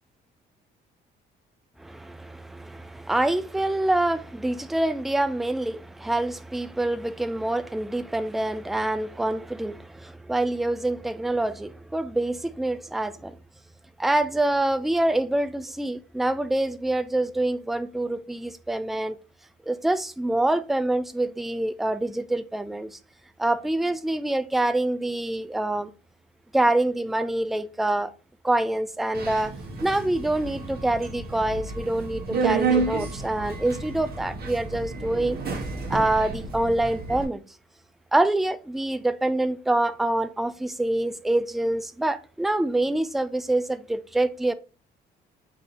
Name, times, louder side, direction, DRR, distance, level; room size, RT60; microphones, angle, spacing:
voice 1, 1.8-13.3 14.0-19.2 19.7-23.0 23.4-25.9 26.5-28.1 28.4-29.5 29.8-35.4 35.9-37.4 38.1-44.5, right 1 dB, ahead, 0.3 m, -26 dB
Subway metro underground, 29.1-37.2, right 4 dB, 50° right, 1.1 m, -30 dB
4.2 x 2.7 x 3.9 m
cardioid pair, 90°, 20 cm